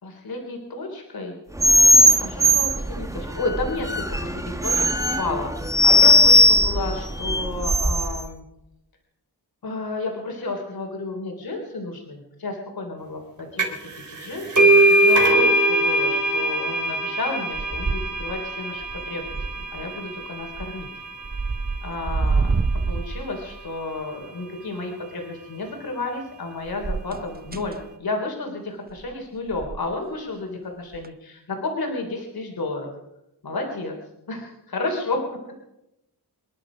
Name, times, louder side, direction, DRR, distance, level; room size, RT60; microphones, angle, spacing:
voice 1, 0.0-1.4 2.2-8.4 9.6-13.6 13.9-20.9 21.8-22.5 22.9-32.9 33.4-33.9 34.3-35.2, left 2 dB, 60° left, 2 dB, 3.4 m, -32 dB
sound 1, 1.6-8.2, equal, 10° right, 1.1 m, -18 dB
sound 2, 13.6-13.9 14.2-21.5, right 1 dB, 45° right, 3.7 m, -21 dB
sound 3, 17.5-18.5 18.8-19.8 20.4-20.8 21.2-23.7 26.6-27.8 28.9-29.1 29.5-29.9 30.9-31.1, right 4 dB, 25° right, 0.7 m, -27 dB
26.0 x 11.0 x 5.0 m, 0.88 s
wide cardioid pair, 135°, 41 cm